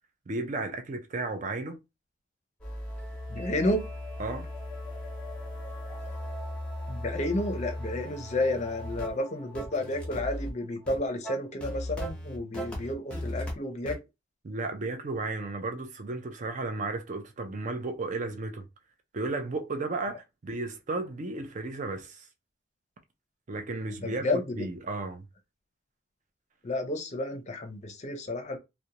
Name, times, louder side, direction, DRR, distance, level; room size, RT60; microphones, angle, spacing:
voice 1, 0.3-1.8 4.2-4.5 14.4-18.6 19.1-22.2 23.5-25.3, right 3 dB, 40° right, 0.5 m, -34 dB
sound 1, 2.6-13.5 13.9-14.0, equal, 5° left, 0.8 m, -37 dB
voice 2, 3.3-3.9 6.9-14.0 24.0-24.7 26.6-28.6, left 1 dB, 40° left, 0.6 m, -31 dB
2.4 x 2.1 x 2.8 m
head